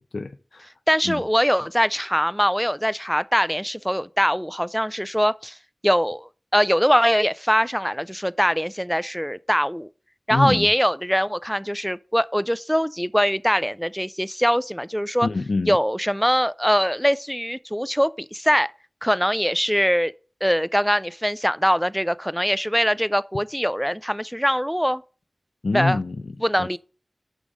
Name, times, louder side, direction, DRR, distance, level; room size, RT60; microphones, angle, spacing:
voice 1, 0.1-0.7 1.0-1.2 10.3-10.7 15.2-15.8 25.6-26.7, left 3 dB, 85° left, 0.3 m, -26 dB
voice 2, 0.9-5.6 5.8-9.9 10.3-15.3 15.7-18.7 19.0-20.1 20.4-25.0 25.7-26.0 26.4-26.8, equal, ahead, 0.3 m, -22 dB
6.3 x 5.2 x 4.9 m
wide cardioid pair, 40°, 0 cm